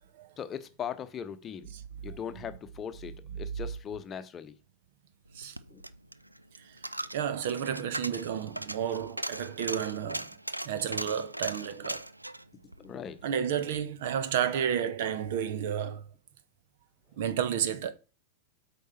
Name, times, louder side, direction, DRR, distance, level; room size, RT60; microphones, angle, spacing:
voice 1, 0.4-1.7 2.0-4.6 5.7-5.8 12.8-13.2, left 8 dB, 25° left, 0.9 m, -39 dB
Coin (dropping), 5.3-13.8 14.1-14.2, right 1 dB, 85° right, 0.4 m, -39 dB
voice 2, 7.1-10.3 10.6-12.1 13.2-16.0 17.2-17.9, right 8 dB, 55° right, 0.9 m, -31 dB
8.3 x 5.5 x 4.3 m
figure-of-eight pair, 90°, 0 cm